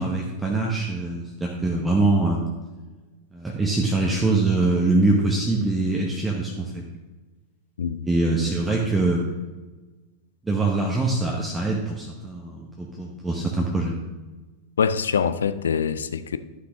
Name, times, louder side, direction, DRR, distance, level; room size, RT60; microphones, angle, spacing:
voice 1, 0.0-2.5 3.3-6.9 8.1-9.3 10.4-14.0, right 2 dB, 10° right, -1 dB, 1.0 m, -23 dB
voice 2, 14.8-16.4, left 6 dB, 70° left, 12 dB, 0.4 m, -24 dB
11.5 x 6.0 x 3.6 m, 1.2 s
figure-of-eight pair, 90°, 0 cm